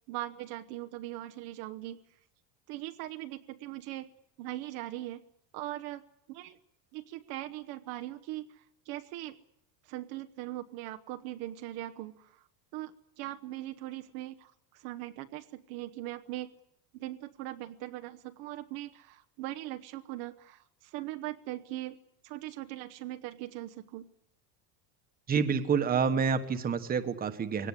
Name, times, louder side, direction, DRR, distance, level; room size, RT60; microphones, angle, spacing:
voice 1, 0.1-2.0 2.7-4.1 4.4-5.2 5.5-6.6 6.9-9.4 9.8-12.4 12.7-16.5 16.9-22.0 22.2-24.1, right 15 dB, 50° right, 7 dB, 1.0 m, -40 dB
voice 2, 25.3-27.7, right 6 dB, 20° right, 9 dB, 1.4 m, -28 dB
22.5 x 17.5 x 9.8 m, 0.77 s
cardioid pair, 160°, 47 cm